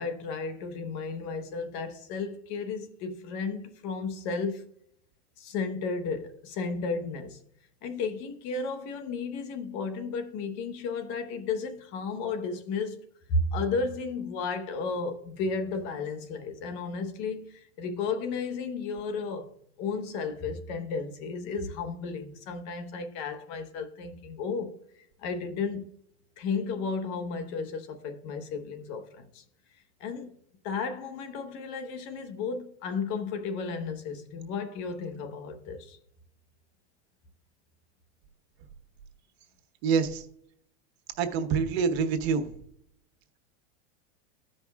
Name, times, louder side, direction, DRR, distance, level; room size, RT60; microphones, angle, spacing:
voice 1, 0.0-4.7 5.4-7.4 7.8-13.0 13.3-19.5 19.8-24.7 25.2-25.8 26.4-29.4 30.0-30.3 30.6-36.0, left 4 dB, 55° left, 1.1 m, -33 dB
voice 2, 39.8-40.2 41.2-42.5, right 5 dB, 70° right, 1.2 m, -26 dB
14.5 x 5.2 x 2.4 m
supercardioid pair, 125°, 33 cm